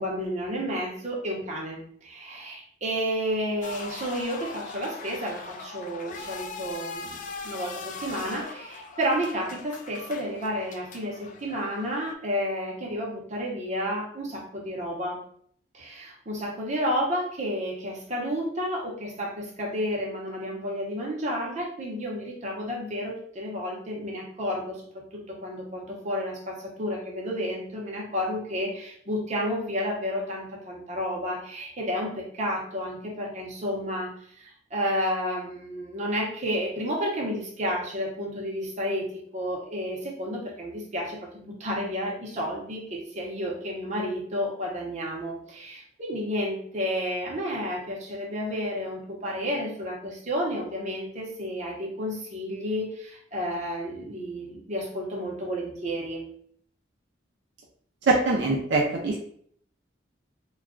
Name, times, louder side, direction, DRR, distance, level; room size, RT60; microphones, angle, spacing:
voice 1, 0.0-7.2 7.4-15.2 15.7-39.1 39.3-56.2, equal, 40° right, -2 dB, 0.7 m, -31 dB
sound 1, 3.6-12.1, left 4 dB, 45° left, 0.3 m, -40 dB
voice 2, 58.0-59.2, right 3 dB, 75° right, 0 dB, 0.4 m, -23 dB
2.3 x 2.2 x 3.6 m, 0.62 s
head